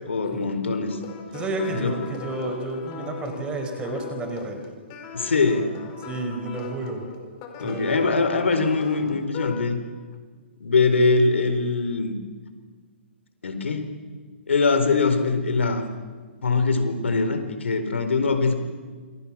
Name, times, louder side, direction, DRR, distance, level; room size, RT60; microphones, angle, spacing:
voice 1, 0.1-1.0 1.7-2.0 5.1-5.7 7.6-9.8 10.6-12.1 13.4-13.9 14.5-15.8 16.4-18.5, left 4 dB, 90° left, 8 dB, 4.4 m, -22 dB
sound 1, 0.9-9.6, left 7 dB, 35° left, 4.7 m, -39 dB
voice 2, 1.3-4.6 6.0-7.1 7.6-8.1, right 2 dB, 15° right, 5 dB, 4.9 m, -31 dB
28.5 x 25.0 x 7.5 m, 1.5 s
hypercardioid pair, 145°, 6 cm